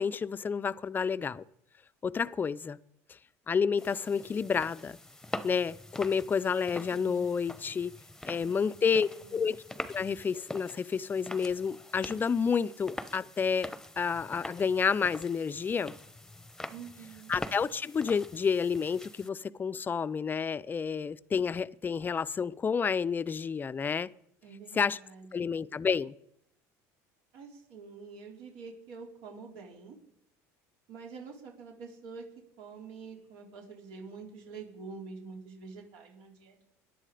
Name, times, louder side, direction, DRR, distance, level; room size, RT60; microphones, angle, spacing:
voice 1, 0.0-1.4 2.0-2.8 3.5-5.0 5.4-7.9 8.2-9.6 9.9-16.0 17.3-24.1 24.7-25.0 25.3-26.1, left 6 dB, 25° left, 0.5 m, -30 dB
sound 1, 3.8-19.3, left 1 dB, 5° left, 1.0 m, -44 dB
voice 2, 6.9-7.3 8.4-8.8 9.1-9.4 16.7-17.3 24.4-25.5 27.3-30.0 30.9-32.3 32.6-36.6, right 5 dB, 75° right, 3.8 m, -47 dB
18.0 x 11.0 x 5.0 m
supercardioid pair, 100°, 8 cm